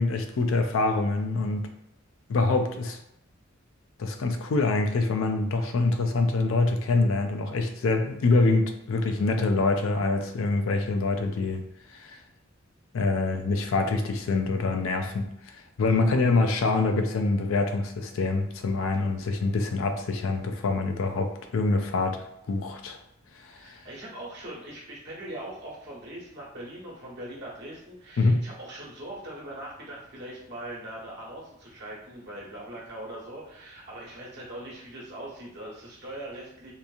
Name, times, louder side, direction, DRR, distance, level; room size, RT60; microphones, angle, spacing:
voice 1, 0.0-1.7 2.3-3.0 4.0-11.6 11.9-12.2 12.9-15.3 15.8-23.0 23.4-23.8 28.2-28.4, left 3 dB, 75° left, 5 dB, 0.4 m, -25 dB
voice 2, 23.5-36.7, right 1 dB, 55° right, -5 dB, 1.0 m, -41 dB
2.9 x 2.6 x 2.4 m, 0.78 s
head